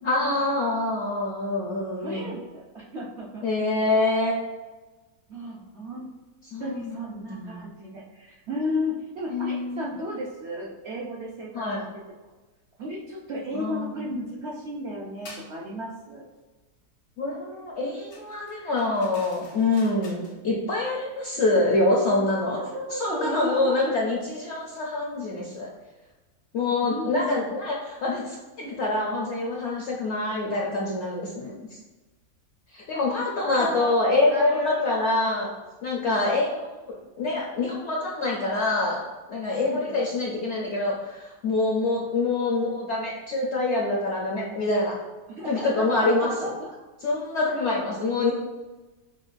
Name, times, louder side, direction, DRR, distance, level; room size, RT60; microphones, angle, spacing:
voice 1, 0.0-2.3 3.4-4.5 6.5-7.7 9.3-9.8 11.5-11.8 13.5-14.1 17.2-22.6 22.9-25.7 26.5-31.6 32.7-35.5 35.8-36.7 37.2-39.0 39.3-44.9 45.4-46.5 47.0-48.3, left 2 dB, 65° left, -3 dB, 0.7 m, -26 dB
voice 2, 2.0-3.4 3.7-3.9 5.3-6.1 6.6-11.6 12.8-16.2 22.6-23.9 26.8-27.5 33.4-34.9 39.6-40.0 45.3-46.8, equal, 65° right, -4 dB, 0.6 m, -34 dB
sound 1, 15.2-15.5 18.1-20.4, left 2 dB, 90° left, 1.7 m, -47 dB
6.2 x 2.2 x 2.5 m, 1.2 s
omnidirectional pair, 1.7 m